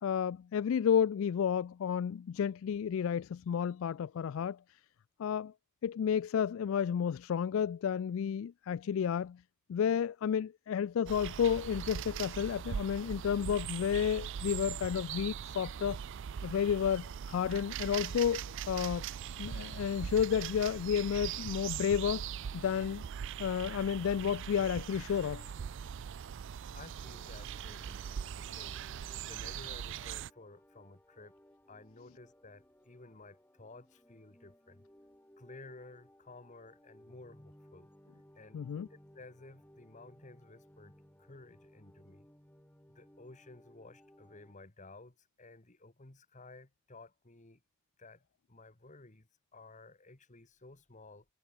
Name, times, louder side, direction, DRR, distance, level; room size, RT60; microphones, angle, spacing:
voice 1, 0.0-4.6 5.2-5.5 5.8-9.4 9.7-16.0 16.4-19.0 19.4-22.3 22.5-23.0 23.4-25.5 38.5-38.9, left 8 dB, 65° left, 0.3 m, -31 dB
sound 1, 11.1-30.3, right 8 dB, 60° right, 0.4 m, -41 dB
voice 2, 26.7-28.8 29.3-31.4 31.7-34.8 35.4-37.9 38.3-42.3 42.9-47.6 48.0-48.2 48.5-51.3, left 2 dB, 35° left, 1.6 m, -54 dB
sound 2, 27.0-44.5, equal, 10° left, 3.3 m, -62 dB
head